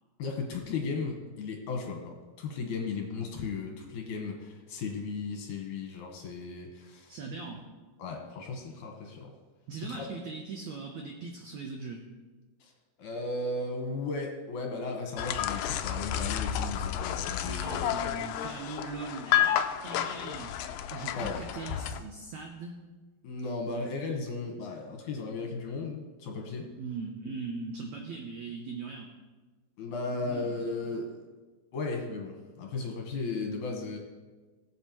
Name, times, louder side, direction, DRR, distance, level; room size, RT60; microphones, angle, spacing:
voice 1, 0.2-7.2 8.0-9.3 9.8-10.1 12.6-12.7 13.0-18.0 21.1-21.4 23.2-26.7 29.8-31.1 31.7-34.0, left 3 dB, 65° left, 1 dB, 2.4 m, -36 dB
voice 2, 7.1-7.7 9.7-12.1 17.4-20.6 20.9-22.7 26.8-29.1 30.1-30.8, right 4 dB, 80° right, 2 dB, 1.6 m, -40 dB
sound 1, 15.2-22.0, left 10 dB, 85° left, 1.9 m, -31 dB
19.5 x 8.0 x 3.0 m, 1.3 s
omnidirectional pair, 4.4 m